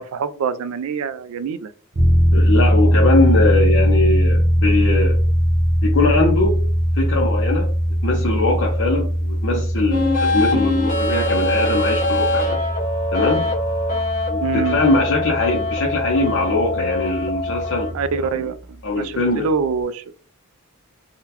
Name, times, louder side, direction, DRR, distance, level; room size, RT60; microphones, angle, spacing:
voice 1, 0.0-1.7 14.4-14.8 17.9-18.6 18.9-20.0, right 5 dB, 70° right, 14 dB, 0.3 m, -25 dB
sound 1, 1.9-18.3, equal, 35° right, 0.6 m, -20 dB
voice 2, 2.3-5.2 5.8-6.6 6.9-7.7 8.0-12.6 13.1-13.4 14.3-17.9 18.4-18.5 18.8-19.5, left 2 dB, 60° left, -3 dB, 0.7 m, -21 dB
sound 2, 9.9-17.9, left 2 dB, 35° left, 0.9 m, -23 dB
3.7 x 2.2 x 2.8 m, 0.40 s
head